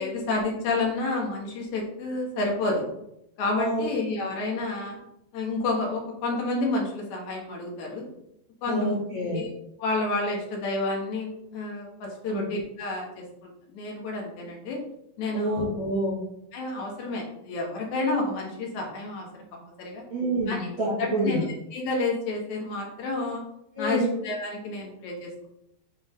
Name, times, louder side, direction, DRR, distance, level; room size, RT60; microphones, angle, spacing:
voice 1, 0.0-2.8 3.4-5.0 5.3-8.1 8.6-8.9 9.3-9.5 9.8-14.8 15.2-15.7 16.5-20.0 20.5-21.4 21.7-23.4 23.8-25.5, left 3 dB, 60° left, -1 dB, 2.2 m, -30 dB
voice 2, 8.7-9.4 12.3-12.4 15.3-16.2 20.1-21.4 23.8-24.1, right 1 dB, 45° right, -8 dB, 1.9 m, -27 dB
7.7 x 3.8 x 3.6 m, 0.80 s
omnidirectional pair, 4.5 m